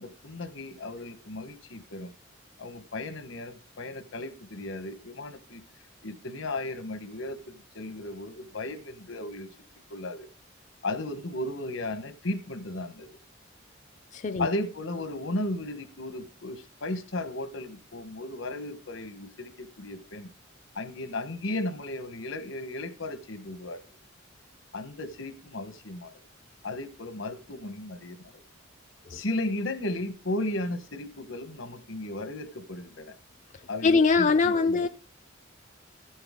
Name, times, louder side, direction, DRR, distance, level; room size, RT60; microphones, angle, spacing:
voice 1, 0.0-2.1 2.6-5.6 6.0-9.5 9.9-10.3 10.8-13.2 14.4-20.3 20.7-23.8 24.7-26.2 26.6-28.4 29.1-33.1 33.7-34.9, left 2 dB, 80° left, 1.1 m, -35 dB
voice 2, 14.1-14.5 29.1-29.2 33.8-34.9, left 4 dB, 40° left, 0.4 m, -22 dB
15.0 x 7.9 x 3.6 m
head